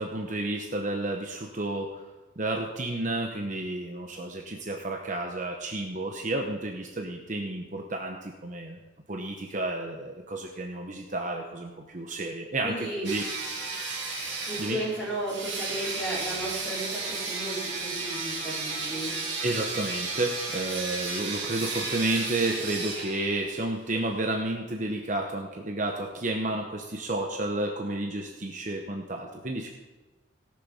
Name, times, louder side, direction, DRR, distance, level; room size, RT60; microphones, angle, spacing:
voice 1, 0.0-2.0 2.4-8.8 9.1-13.3 14.6-14.8 19.4-29.7, right 2 dB, 40° right, 2 dB, 1.0 m, -31 dB
voice 2, 12.6-13.1 14.5-19.2, right 1 dB, 5° left, -8 dB, 4.9 m, -34 dB
sound 1, 13.0-23.6, right 3 dB, 85° right, 2.9 m, -33 dB
17.5 x 6.7 x 5.7 m, 1.2 s
head